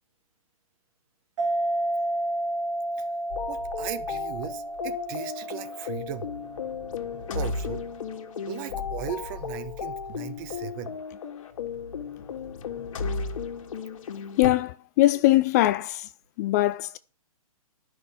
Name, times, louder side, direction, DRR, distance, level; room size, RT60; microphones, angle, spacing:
sound 1, 1.4-8.4, right 1 dB, 60° right, 3.0 m, -32 dB
sound 2, 3.3-14.5, left 6 dB, 60° left, 1.9 m, -35 dB
voice 1, 3.5-6.3 7.3-7.9 8.5-11.0, right 10 dB, 35° right, 1.3 m, -37 dB
voice 2, 14.4-16.1 16.4-17.0, left 16 dB, 30° left, 0.4 m, -22 dB
11.0 x 6.2 x 7.0 m
hypercardioid pair, 135°, 19 cm